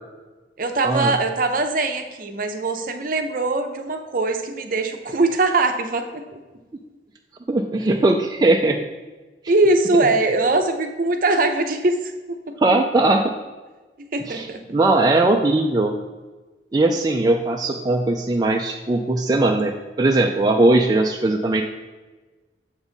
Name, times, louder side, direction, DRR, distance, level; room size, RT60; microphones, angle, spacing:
voice 1, 0.6-6.4 9.5-12.5 14.0-14.6, right 2 dB, 50° right, 6 dB, 0.7 m, -22 dB
voice 2, 7.5-8.8 12.6-13.3 14.2-15.9 16.7-19.7 20.0-21.6, right 2 dB, 20° right, 2 dB, 0.4 m, -19 dB
7.1 x 5.3 x 4.0 m, 1.3 s
head